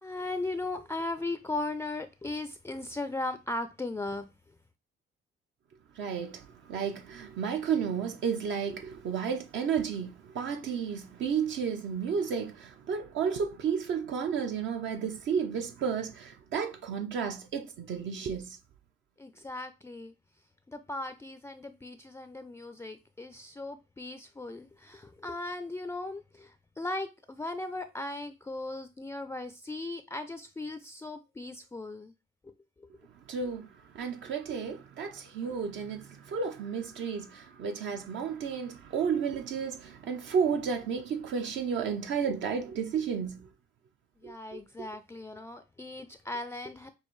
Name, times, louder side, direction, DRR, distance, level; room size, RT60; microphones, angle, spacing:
voice 1, 0.0-4.3 19.2-20.1 20.7-32.1 32.4-32.5 44.2-46.9, left 2 dB, 15° left, 0.3 m, -37 dB
voice 2, 6.0-18.6 33.3-43.5 44.2-44.6, right 6 dB, 70° right, 0.7 m, -32 dB
6.3 x 2.6 x 3.1 m
cardioid pair, 90°, 20 cm